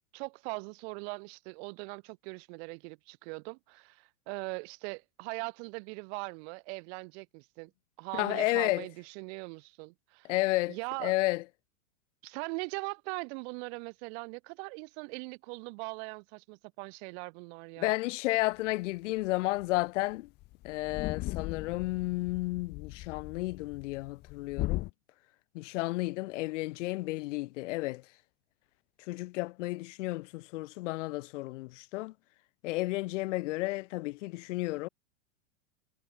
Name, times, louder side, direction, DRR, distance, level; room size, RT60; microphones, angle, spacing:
voice 1, 0.1-7.7 8.0-10.3 10.7-11.1 12.2-17.9, right 32 dB, 50° right, 2.0 m, -40 dB
voice 2, 8.1-8.9 10.3-11.4 17.8-20.3 20.6-24.9 25.5-28.0 29.1-32.1 32.6-34.9, left 20 dB, 60° left, 0.8 m, -32 dB
sound 1, 19.2-19.3 19.6-19.8 20.1-20.2 20.4-24.9, left 19 dB, 25° left, 0.5 m, -38 dB
hypercardioid pair, 130°, 41 cm